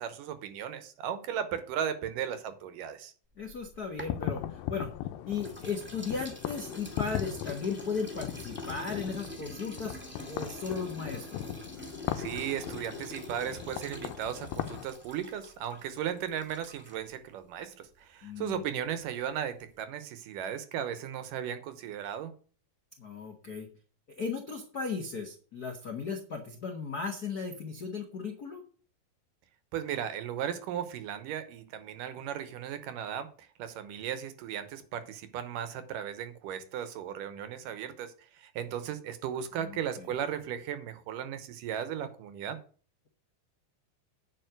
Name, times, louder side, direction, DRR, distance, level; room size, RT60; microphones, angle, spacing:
voice 1, 0.0-3.1 12.1-22.3 29.7-42.6, right 9 dB, 75° right, 2.5 m, -36 dB
voice 2, 3.4-4.9 5.2-10.0 10.3-11.4 18.2-18.6 23.0-23.7 24.1-28.6 39.6-40.1, left 5 dB, 75° left, 0.8 m, -36 dB
sound 1, 3.4-5.0 5.4-17.1, left 1 dB, 5° right, 1.8 m, -46 dB
sound 2, 4.1-14.9, left 12 dB, 90° left, 2.6 m, -39 dB
9.1 x 5.4 x 7.9 m
omnidirectional pair, 4.1 m